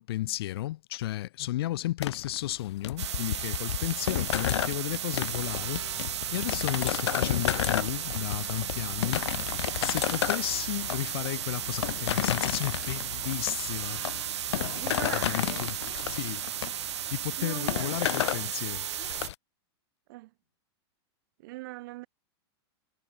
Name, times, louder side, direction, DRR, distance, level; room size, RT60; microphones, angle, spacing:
voice 1, 0.0-6.1 6.3-9.5 9.8-14.0 14.8-14.9 15.2-15.8 16.1-16.4 17.1-18.8, left 15 dB, 60° left, 1.4 m, -33 dB
sound 1, 2.0-19.3, left 12 dB, 85° left, 0.7 m, -32 dB
sound 2, 3.0-19.3, right 11 dB, 85° right, 2.1 m, -35 dB
voice 2, 14.8-15.7 17.4-17.9 20.1-20.3 21.4-22.1, right 20 dB, 50° right, 3.9 m, -40 dB
supercardioid pair, 155°, 14 cm